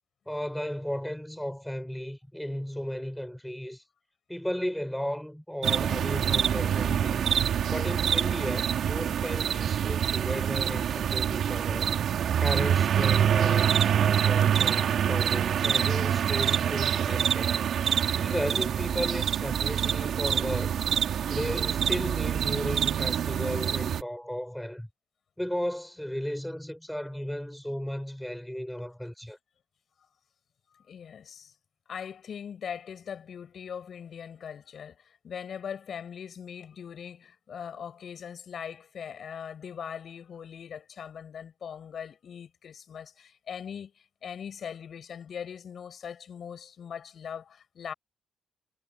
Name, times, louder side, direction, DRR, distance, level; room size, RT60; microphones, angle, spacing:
voice 1, 0.3-3.8 4.3-7.3 7.7-12.0 12.4-17.6 18.1-20.8 21.3-24.9 25.4-29.4, equal, 5° left, 7.1 m, -35 dB
sound 1, 5.6-24.0, right 9 dB, 65° right, 2.9 m, -26 dB
voice 2, 30.9-31.5 31.9-35.0 35.2-43.9 44.2-47.9, left 7 dB, 55° left, 7.2 m, -40 dB
cardioid pair, 90°, 0 cm